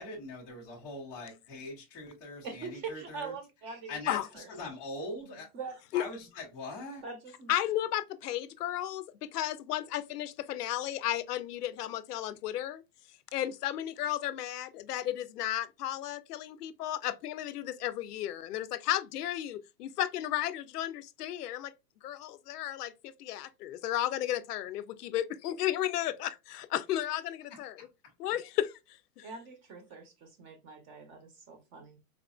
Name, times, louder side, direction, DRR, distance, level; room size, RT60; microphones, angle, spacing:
voice 1, 0.0-3.3 3.9-5.5 5.9-7.0 27.5-27.9, left 2 dB, 10° left, 0.4 m, -42 dB
voice 2, 2.4-4.5 5.5-5.8 7.0-7.5 29.2-32.0, right 4 dB, 25° right, 0.7 m, -43 dB
voice 3, 7.5-9.0 9.3-12.8 13.3-21.7 22.0-27.8 28.2-28.7 29.2-29.3, left 12 dB, 90° left, 0.6 m, -33 dB
4.0 x 2.5 x 2.3 m
supercardioid pair, 150°, 45 cm